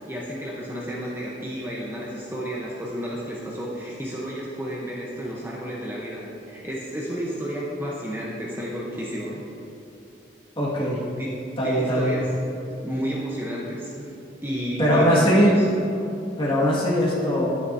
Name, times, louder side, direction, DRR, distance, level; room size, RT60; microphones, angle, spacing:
voice 1, 0.1-9.4 11.2-11.3 11.6-12.3 12.8-14.1 14.4-15.7, equal, 10° right, -5 dB, 0.9 m, -31 dB
voice 2, 10.6-11.0 11.6-12.1 14.8-15.6 16.4-17.6, equal, 30° left, -6 dB, 1.9 m, -20 dB
10.5 x 9.6 x 2.7 m, 2.8 s
head